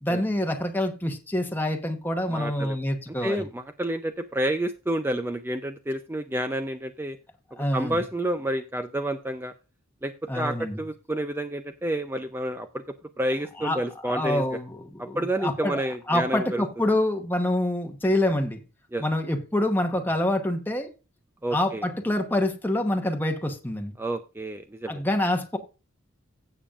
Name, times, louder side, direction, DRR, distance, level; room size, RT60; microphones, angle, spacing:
voice 1, 0.0-3.5 7.6-8.0 10.3-10.8 13.6-15.8 16.1-18.6 19.0-20.9 21.5-23.9 24.9-25.6, left 1 dB, 10° left, 1.0 m, -26 dB
voice 2, 2.3-2.8 3.2-7.2 7.7-9.5 10.0-12.8 13.2-14.4 15.0-16.7 18.9-19.0 21.4-21.8 24.0-25.0, right 1 dB, 10° right, 0.5 m, -29 dB
16.0 x 7.0 x 2.5 m
head